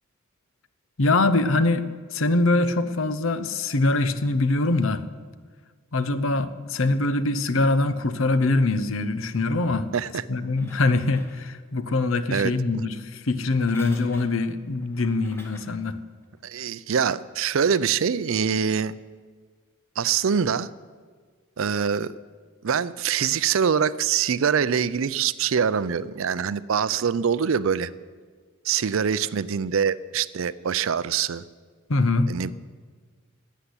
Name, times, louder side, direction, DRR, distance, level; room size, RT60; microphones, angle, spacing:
voice 1, 1.0-1.9 2.1-5.1 5.9-9.9 10.3-16.0 31.9-32.3, left 2 dB, 65° left, 13 dB, 0.8 m, -23 dB
voice 2, 9.9-10.2 12.3-12.9 16.4-18.9 20.0-20.7 21.6-22.1 22.6-27.9 28.6-31.4 32.3-32.5, right 7 dB, 65° right, 18 dB, 0.5 m, -24 dB
sound 1, 10.3-11.8 13.4-15.8 16.4-16.5, left 1 dB, 10° left, 1.6 m, -49 dB
13.0 x 8.4 x 9.8 m, 1.5 s
head